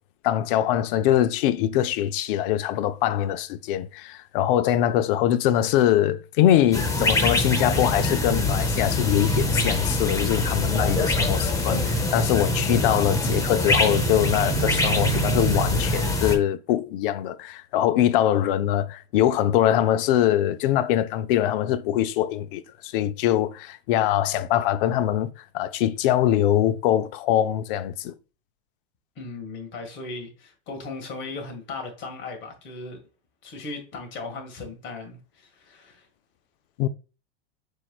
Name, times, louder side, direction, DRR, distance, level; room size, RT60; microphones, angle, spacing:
voice 1, 0.2-28.2 36.8-36.9, left 12 dB, 55° left, 0.5 m, -23 dB
sound 1, 6.7-16.4, left 1 dB, 10° left, 0.7 m, -24 dB
voice 2, 29.2-33.0 33.4-36.1, left 3 dB, 35° left, 1.7 m, -37 dB
4.6 x 4.3 x 2.3 m
hypercardioid pair, 125°, 32 cm